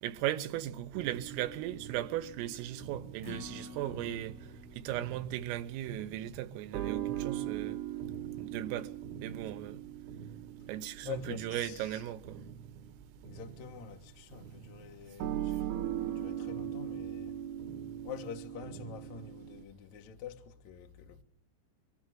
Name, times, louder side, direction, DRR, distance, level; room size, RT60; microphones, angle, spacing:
voice 1, 0.0-4.4 4.7-7.8 8.4-8.9 9.2-9.8 10.7-12.4, right 13 dB, 85° right, 3.7 m, -37 dB
sound 1, 0.9-19.6, right 11 dB, 70° right, 2.6 m, -41 dB
Acoustic guitar, 3.2-9.5 9.9-10.0 10.4-10.5, left 4 dB, 40° left, 1.4 m, -53 dB
voice 2, 11.0-12.1 13.2-15.7 16.1-17.4 18.0-21.2, left 9 dB, 75° left, 1.7 m, -46 dB
24.5 x 20.0 x 7.6 m
omnidirectional pair, 5.8 m